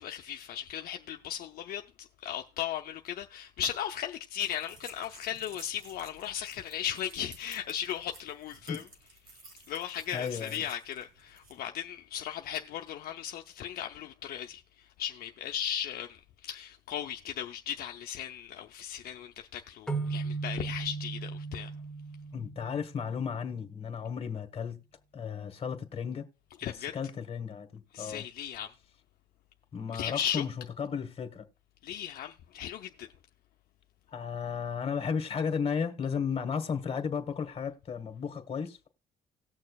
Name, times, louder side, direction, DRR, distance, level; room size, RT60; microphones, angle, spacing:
voice 1, 0.0-8.8 9.7-21.7 26.6-26.9 27.9-28.7 29.9-30.4 31.8-33.1, left 10 dB, 60° left, 0.5 m, -37 dB
sound 1, 4.4-11.6, right 3 dB, 55° right, 1.9 m, -54 dB
voice 2, 10.1-10.6 22.3-24.8 25.1-26.2 26.6-28.2 29.7-30.5 30.8-31.5 34.1-38.9, left 6 dB, 35° left, 1.2 m, -34 dB
sound 2, 19.9-23.4, right 4 dB, 5° left, 0.6 m, -37 dB
18.0 x 6.4 x 2.3 m
cardioid pair, 110°, 17 cm